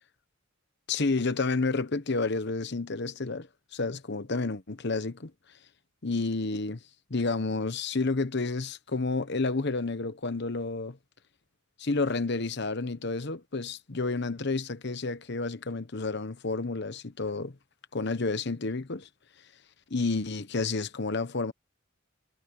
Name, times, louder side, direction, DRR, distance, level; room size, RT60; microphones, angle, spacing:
voice 1, 0.9-3.5 3.7-5.3 6.0-6.8 7.1-11.0 11.8-17.5 17.9-19.1 19.9-21.5, left 3 dB, 55° left, 1.0 m, -30 dB
head